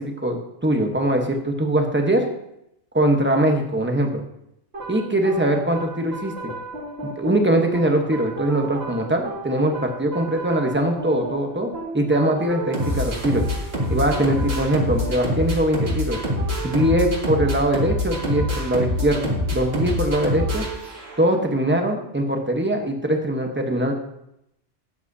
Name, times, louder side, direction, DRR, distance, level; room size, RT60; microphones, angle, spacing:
voice 1, 0.0-2.3 2.9-4.2 4.9-6.5 7.0-13.4 13.9-16.2 16.6-20.6 21.2-23.9, right 1 dB, 10° right, 3 dB, 1.0 m, -22 dB
sound 1, 4.7-21.4, equal, 50° right, 2.4 m, -27 dB
13.0 x 9.1 x 2.8 m, 0.80 s
omnidirectional pair, 1.3 m